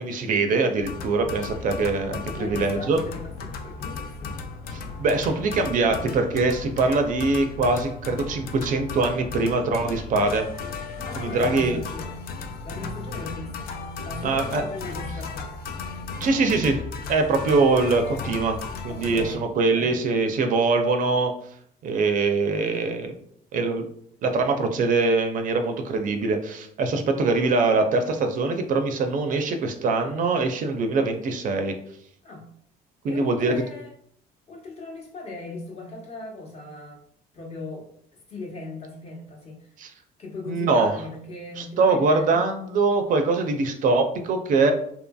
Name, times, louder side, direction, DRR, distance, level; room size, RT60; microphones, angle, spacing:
voice 1, 0.0-3.0 4.7-10.5 11.2-11.8 14.2-14.6 16.2-16.8 17.1-18.6 18.8-21.3 21.8-23.2 23.5-23.9 24.2-31.7 33.0-33.5 39.8-39.9 40.5-40.9 41.6-44.7, right 3 dB, 50° right, 6 dB, 0.4 m, -23 dB
sound 1, 0.8-19.4, left 4 dB, 60° left, 0.4 m, -35 dB
voice 2, 2.3-4.3 11.0-12.2 12.6-13.7 14.0-15.5 18.9-19.5 19.7-20.0 32.2-32.4 33.0-33.9 34.5-37.0 37.3-39.7 40.2-42.4, left 2 dB, 40° left, -1 dB, 0.9 m, -38 dB
2.7 x 2.5 x 2.2 m, 0.67 s
cardioid pair, 110°, 17 cm